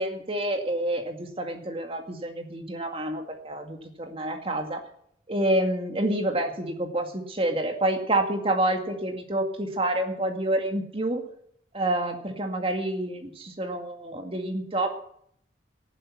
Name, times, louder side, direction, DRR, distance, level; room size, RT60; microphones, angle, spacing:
voice 1, 0.0-4.8 5.3-11.2 11.7-14.9, right 1 dB, 30° right, 4 dB, 2.1 m, -28 dB
14.5 x 11.5 x 6.2 m, 0.67 s
head